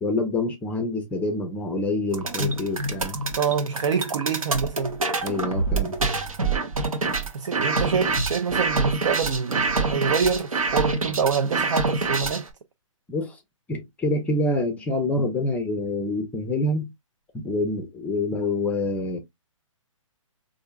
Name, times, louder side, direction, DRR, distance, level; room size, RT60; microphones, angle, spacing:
voice 1, 0.0-3.2 5.2-5.9 13.1-13.4 13.7-16.9 17.3-19.2, left 2 dB, 10° left, 0.5 m, -26 dB
sound 1, 2.1-12.5, right 3 dB, 85° right, 0.9 m, -26 dB
voice 2, 3.4-5.0 6.8-6.9 7.3-12.5, right 6 dB, 60° right, 0.5 m, -26 dB
4.4 x 2.5 x 2.3 m
figure-of-eight pair, 130°, 17 cm